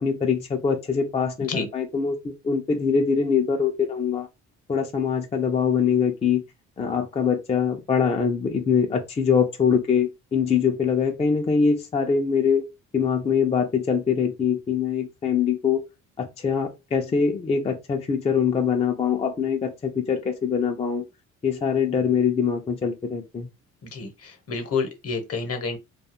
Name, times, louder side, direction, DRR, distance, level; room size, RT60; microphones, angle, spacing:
voice 1, 0.0-2.2 2.4-4.3 4.7-6.4 6.8-12.6 12.9-15.8 16.2-21.0 21.4-23.5, left 6 dB, 20° left, 0.4 m, -23 dB
voice 2, 23.8-25.8, left 4 dB, 50° left, 0.8 m, -29 dB
2.3 x 2.3 x 2.8 m
cardioid pair, 90°, 30 cm